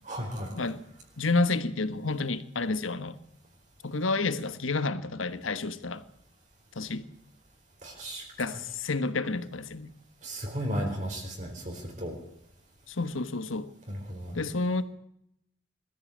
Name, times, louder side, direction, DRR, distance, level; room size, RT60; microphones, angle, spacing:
voice 1, 0.0-0.7 7.8-8.6 10.2-12.1 13.9-14.4, equal, 40° right, 4.4 m, -35 dB
voice 2, 1.2-3.2 3.8-6.0 6.7-7.1 8.4-9.9 12.9-13.7 14.3-14.8, left 3 dB, 85° left, 1.4 m, -30 dB
21.5 x 14.0 x 8.7 m
head